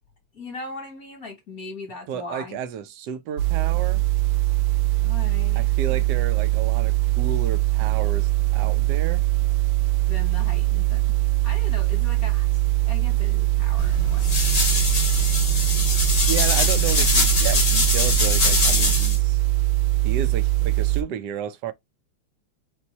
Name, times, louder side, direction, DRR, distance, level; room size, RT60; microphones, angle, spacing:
voice 1, 0.3-2.6 5.0-6.0 10.1-11.2 11.4-12.6 12.8-14.4, left 3 dB, 50° left, 1.4 m, -39 dB
voice 2, 2.1-4.0 5.6-9.2 16.3-19.4 20.0-21.7, right 9 dB, 70° right, 1.0 m, -32 dB
sound 1, 3.4-21.0, right 18 dB, 85° right, 1.5 m, -22 dB
sound 2, 13.8-19.2, left 3 dB, 75° left, 0.3 m, -23 dB
4.4 x 2.2 x 4.0 m
omnidirectional pair, 2.4 m